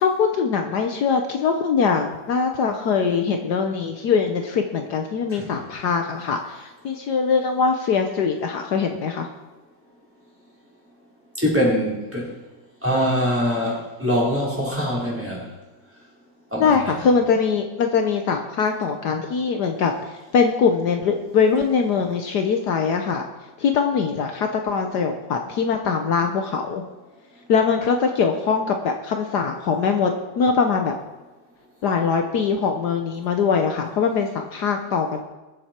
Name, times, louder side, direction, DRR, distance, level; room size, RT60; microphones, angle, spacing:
voice 1, 0.0-9.3 16.6-23.2 23.6-26.8 27.5-30.9 31.8-35.2, left 5 dB, 65° left, 5 dB, 1.4 m, -22 dB
voice 2, 11.4-12.3 12.8-15.5 16.5-17.0, equal, 5° right, -5 dB, 4.0 m, -23 dB
22.5 x 7.7 x 4.4 m, 1.1 s
omnidirectional pair, 1.9 m